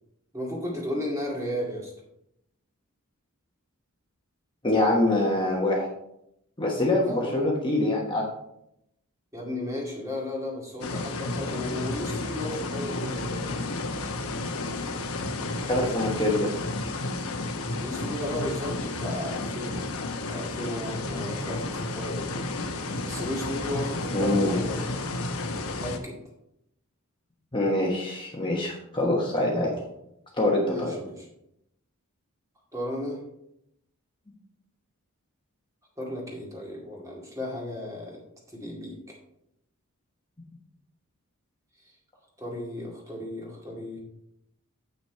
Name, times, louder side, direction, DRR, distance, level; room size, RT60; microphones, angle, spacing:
voice 1, 0.3-1.9 7.0-7.4 9.3-13.6 17.8-19.9 20.3-22.3 23.0-25.0 25.5-26.2 29.5-29.7 30.7-31.3 32.7-33.2 36.0-38.2 38.5-39.2 42.4-44.0, left 1 dB, 15° right, -2 dB, 2.1 m, -34 dB
voice 2, 4.6-5.9 6.6-8.3 15.7-16.5 24.1-24.5 27.5-29.7 30.4-30.9, left 1 dB, 20° left, -2 dB, 1.2 m, -24 dB
sound 1, 10.8-26.0, left 2 dB, 70° left, 1.0 m, -32 dB
8.1 x 6.1 x 4.5 m, 0.79 s
head